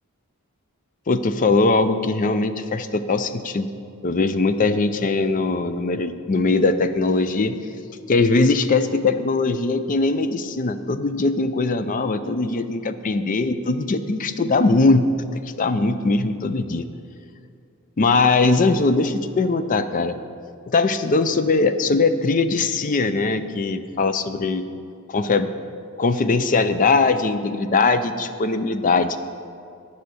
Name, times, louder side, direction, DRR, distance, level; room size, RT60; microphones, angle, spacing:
voice 1, 1.1-3.7 4.0-7.6 8.1-16.9 18.0-20.2 20.7-24.6 25.1-25.5 26.0-29.2, left 3 dB, 40° left, 11 dB, 0.4 m, -20 dB
10.5 x 5.7 x 7.9 m, 2.4 s
head